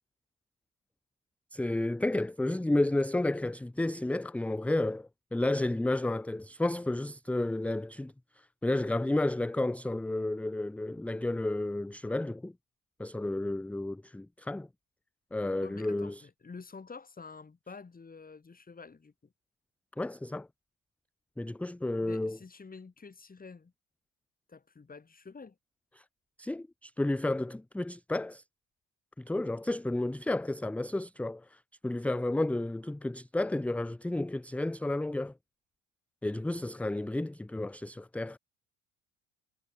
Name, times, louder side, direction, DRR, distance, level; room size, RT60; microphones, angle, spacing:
voice 1, 1.5-12.5 13.0-14.7 15.3-16.2 20.0-20.5 21.4-22.4 26.0-26.1 26.4-28.4 29.2-35.3 36.2-38.4, left 2 dB, 5° left, 0.6 m, -32 dB
voice 2, 15.6-19.3 22.0-23.7 24.5-25.6, left 4 dB, 25° left, 5.0 m, -48 dB
supercardioid pair, 85°, 36 cm